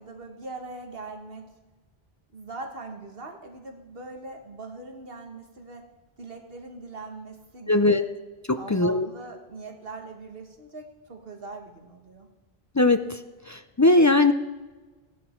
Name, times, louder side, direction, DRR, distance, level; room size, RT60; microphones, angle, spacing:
voice 1, 0.0-1.5 2.3-5.8 6.2-8.1 8.6-12.3, right 3 dB, 65° right, 3 dB, 1.8 m, -41 dB
voice 2, 7.7-8.0 8.5-9.1 12.8-13.2 13.5-14.3, left 2 dB, 30° left, 9 dB, 0.3 m, -20 dB
16.5 x 10.0 x 4.4 m, 1.2 s
omnidirectional pair, 1.0 m